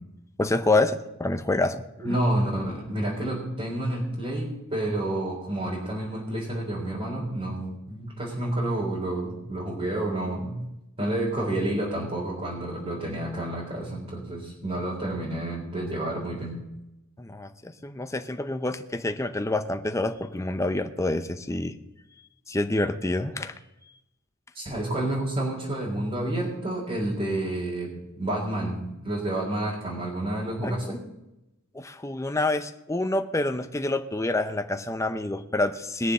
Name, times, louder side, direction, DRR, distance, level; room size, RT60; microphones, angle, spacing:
voice 1, 0.4-2.2 17.2-21.8 22.5-23.6 23.8-24.0 30.6-30.9 31.7-36.1, left 2 dB, 15° left, 8 dB, 0.6 m, -27 dB
voice 2, 2.0-10.6 11.0-16.6 24.5-27.9 28.2-28.8 29.0-31.0, right 1 dB, 30° right, -6 dB, 3.8 m, -29 dB
20.0 x 7.2 x 6.5 m, 0.90 s
head